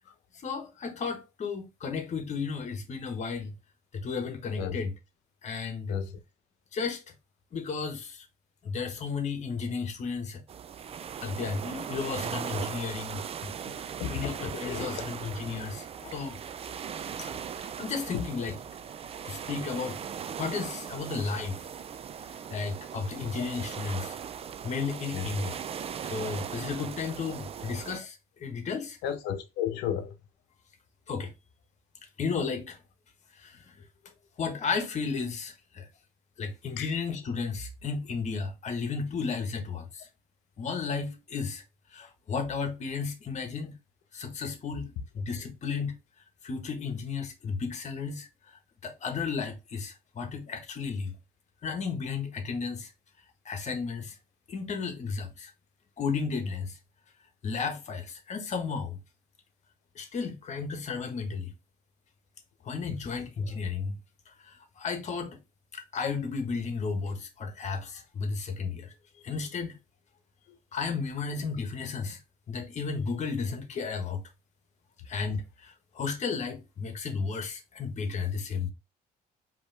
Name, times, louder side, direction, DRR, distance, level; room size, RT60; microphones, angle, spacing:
voice 1, 0.3-3.5 3.9-4.9 5.4-6.0 6.7-7.0 7.5-8.3 8.6-10.4 11.2-15.9 16.1-16.4 17.2-18.5 19.2-20.0 20.4-21.6 22.5-24.2 24.6-25.6 26.0-29.0 31.1-31.3 32.2-32.8 33.4-33.8 34.4-35.9 36.4-40.1 40.6-41.6 41.9-43.8 44.1-45.9 46.4-48.3 48.8-51.1 51.6-52.9 53.4-54.2 54.5-55.5 56.0-56.8 57.4-59.0 59.9-61.5 62.6-64.0 64.3-65.4 65.7-69.8 70.7-72.2 72.5-74.2 75.1-78.7, left 5 dB, 45° left, 1.2 m, -33 dB
sound 1, 10.5-28.0, right 8 dB, 35° right, 0.4 m, -39 dB
voice 2, 14.0-15.0 16.0-16.1 25.1-25.3 29.0-30.1 36.8-36.9, left 9 dB, 85° left, 0.8 m, -33 dB
5.0 x 3.0 x 3.3 m
cardioid pair, 110°, 17 cm